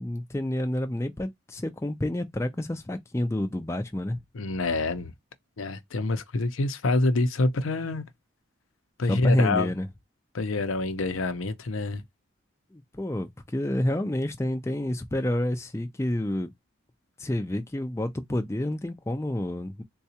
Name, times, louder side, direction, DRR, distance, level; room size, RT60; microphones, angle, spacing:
voice 1, 0.0-4.2 9.1-9.9 12.7-16.5 17.2-19.8, left 1 dB, 15° left, 0.4 m, -29 dB
voice 2, 4.3-5.1 5.6-8.0 9.0-9.7 10.3-12.0, left 2 dB, 85° left, 0.6 m, -26 dB
3.8 x 2.2 x 2.8 m
head